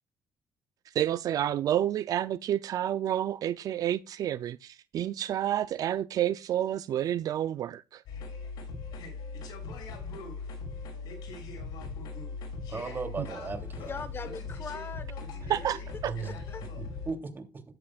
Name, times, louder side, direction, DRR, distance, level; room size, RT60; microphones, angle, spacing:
voice 1, 0.9-8.0 13.2-13.3 15.5-16.1, right 11 dB, 60° right, 0.4 m, -29 dB
sound 1, 8.1-17.1, left 4 dB, 85° left, 5.9 m, -39 dB
voice 2, 12.7-13.9 16.0-16.3 16.8-17.6, right 4 dB, 30° right, 2.8 m, -37 dB
voice 3, 13.9-15.7 16.2-16.6, left 4 dB, 35° left, 1.3 m, -41 dB
13.0 x 11.0 x 2.4 m
cardioid pair, 105°, 7 cm